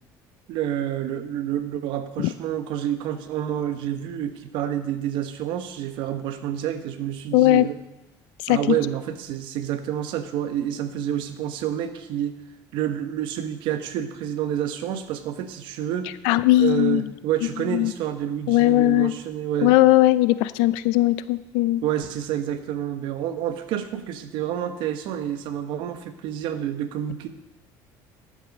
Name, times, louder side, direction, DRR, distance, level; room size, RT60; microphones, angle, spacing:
voice 1, 0.5-7.8 8.5-12.3 12.7-16.1 16.6-19.7 21.8-27.3, right 10 dB, 70° right, 9 dB, 1.1 m, -28 dB
voice 2, 7.3-7.7 8.4-8.8 16.2-17.1 17.7-17.9 18.5-19.1 19.6-21.8, left 16 dB, 85° left, 16 dB, 0.5 m, -19 dB
12.0 x 7.5 x 5.3 m, 0.94 s
cardioid pair, 120°, 9 cm